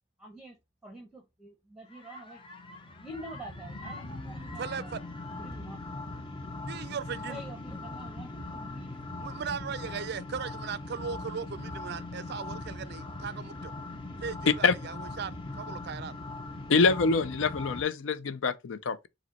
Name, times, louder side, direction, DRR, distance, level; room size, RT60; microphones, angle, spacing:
voice 1, 0.2-2.4 3.0-4.9 5.3-5.8 7.3-9.0, right 1 dB, 5° right, 0.8 m, -46 dB
sound 1, 1.9-17.8, left 2 dB, 25° left, 0.6 m, -40 dB
voice 2, 4.6-5.0 6.7-7.4 9.2-13.7 14.2-16.2, right 6 dB, 55° right, 0.4 m, -38 dB
voice 3, 16.7-19.1, left 4 dB, 80° left, 0.5 m, -25 dB
4.9 x 2.1 x 4.0 m
head